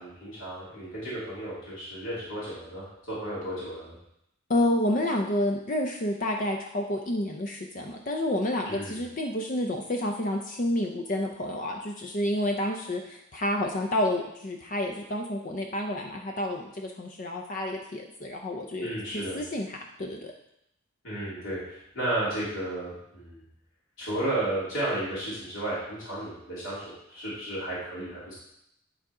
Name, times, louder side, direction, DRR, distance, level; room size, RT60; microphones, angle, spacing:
voice 1, 0.0-3.9 8.6-9.0 18.8-19.4 21.0-23.4 24.0-28.3, right 1 dB, 75° left, -9 dB, 3.3 m, -33 dB
voice 2, 4.5-20.3, left 1 dB, 40° left, 2 dB, 0.6 m, -29 dB
11.0 x 3.8 x 4.9 m, 0.80 s
head